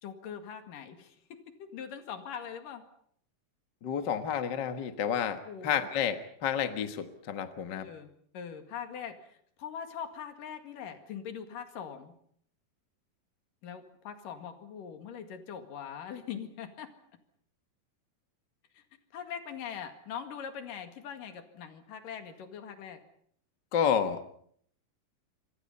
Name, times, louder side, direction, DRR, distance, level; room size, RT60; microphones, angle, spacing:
voice 1, 0.0-2.8 5.5-5.9 7.7-8.1 8.3-12.1 13.6-16.9 18.8-18.9 19.1-23.0, left 8 dB, 70° left, 7 dB, 3.6 m, -42 dB
voice 2, 3.8-7.9 23.7-24.2, left 8 dB, 50° left, 8 dB, 1.3 m, -30 dB
27.0 x 24.0 x 5.6 m, 0.63 s
omnidirectional pair, 4.1 m